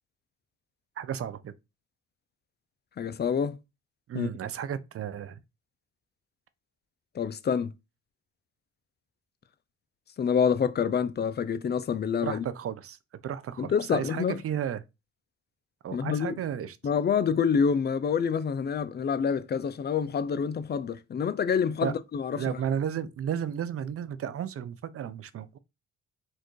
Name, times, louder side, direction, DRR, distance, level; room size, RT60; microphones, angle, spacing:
voice 1, 1.0-1.5 4.1-5.4 12.2-13.0 13.2-14.8 15.8-16.8 21.7-21.9 22.3-25.6, right 9 dB, 50° right, 0.6 m, -33 dB
voice 2, 3.0-3.6 4.1-4.3 7.2-7.7 10.2-12.4 13.6-14.4 15.9-16.3 16.8-22.4, left 6 dB, 35° left, 0.5 m, -27 dB
4.5 x 2.6 x 4.6 m
cardioid pair, 90°, 30 cm